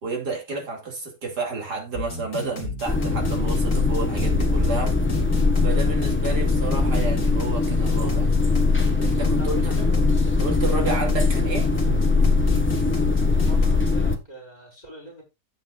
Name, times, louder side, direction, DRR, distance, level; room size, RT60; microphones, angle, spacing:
voice 1, 0.0-4.9 5.6-8.3 9.0-9.9 10.2-11.7, right 4 dB, 70° right, 3.5 m, -31 dB
sound 1, 1.9-13.9, left 4 dB, 60° left, 2.7 m, -33 dB
sound 2, 2.9-14.2, left 3 dB, 10° left, 1.2 m, -21 dB
voice 2, 9.4-9.9 13.2-15.2, right 1 dB, 25° left, 6.2 m, -43 dB
15.5 x 6.3 x 2.5 m
omnidirectional pair, 1.8 m